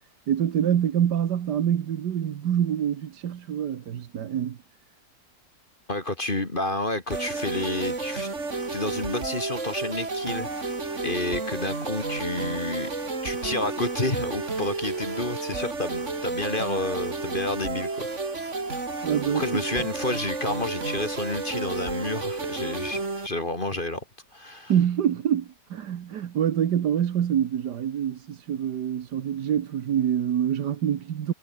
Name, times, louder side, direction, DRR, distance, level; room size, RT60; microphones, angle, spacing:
voice 1, 0.3-4.6 19.0-19.6 24.7-31.3, right 9 dB, 65° right, 1.7 m, -26 dB
voice 2, 5.9-8.3 8.7-10.5 11.0-12.9 13.2-18.3 19.3-24.0 24.3-24.7, left 2 dB, 25° left, 2.5 m, -30 dB
sound 1, 7.1-23.3, right 3 dB, 40° right, 3.3 m, -31 dB
omnidirectional pair, 2.0 m